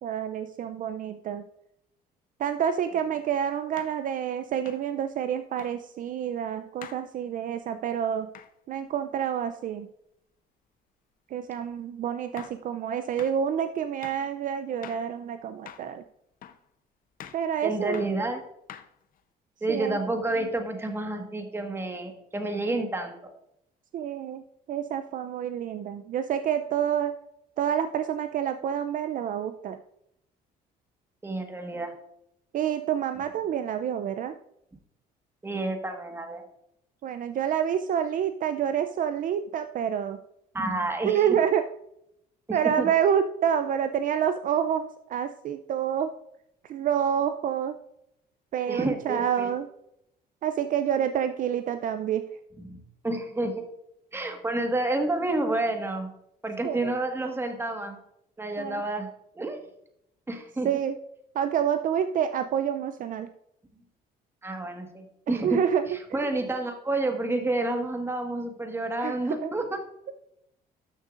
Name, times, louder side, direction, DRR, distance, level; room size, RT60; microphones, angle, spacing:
voice 1, 0.0-1.4 2.4-8.3 8.7-9.9 11.3-16.0 17.3-18.0 19.7-20.0 23.9-24.4 24.7-27.1 27.6-29.8 32.5-34.3 37.0-40.2 41.0-41.7 42.5-46.1 46.7-47.8 48.5-49.7 50.4-52.2 56.6-57.0 58.6-58.8 60.6-61.0 61.3-63.3 65.3-65.9 66.2-66.3 69.0-69.1 69.4-69.5, right 9 dB, 50° right, 9 dB, 0.5 m, -28 dB
sound 1, 2.7-2.8 3.8-4.0 4.7-4.9 5.6-5.8 6.8-7.1 8.3-8.5 11.6-11.8 12.4-12.6 13.2-13.4 14.0-14.3 14.8-15.1 15.7-15.9 16.4-16.7 17.2-17.5 17.9-18.2 18.7-19.2, left 9 dB, 55° left, 0.7 m, -45 dB
voice 2, 17.6-18.4 19.6-23.3 31.2-31.9 35.4-36.4 40.5-41.4 42.5-42.9 48.7-49.5 52.6-53.6 54.1-56.1 56.4-58.0 58.4-59.1 59.3-59.6 60.3-60.7 64.4-65.6 66.1-69.8, right 2 dB, 15° right, 4 dB, 1.5 m, -29 dB
12.5 x 6.5 x 2.5 m, 0.77 s
cardioid pair, 110°, 17 cm